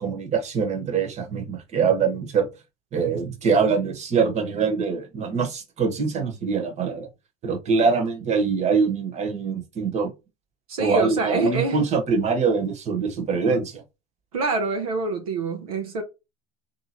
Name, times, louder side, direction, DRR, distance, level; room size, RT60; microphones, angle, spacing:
voice 1, 0.0-2.5 2.9-7.1 7.4-10.1 10.8-13.8, right 5 dB, 40° right, 1.3 m, -23 dB
voice 2, 10.7-11.8 14.3-16.0, right 3 dB, 80° right, 0.9 m, -26 dB
3.5 x 2.8 x 2.9 m
hypercardioid pair, 80°, 18 cm